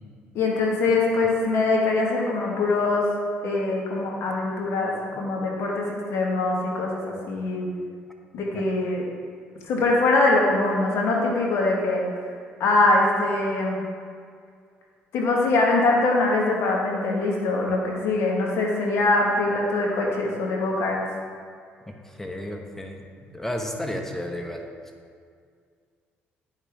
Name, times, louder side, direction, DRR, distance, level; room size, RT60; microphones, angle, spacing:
voice 1, 0.3-3.1 3.4-7.6 8.3-9.0 9.7-12.0 12.6-13.8 15.1-21.0, left 2 dB, 70° left, -1 dB, 1.4 m, -23 dB
voice 2, 21.9-24.7, left 1 dB, 10° left, 3 dB, 0.9 m, -33 dB
8.8 x 5.0 x 3.4 m, 2.1 s
supercardioid pair, 70°, 5 cm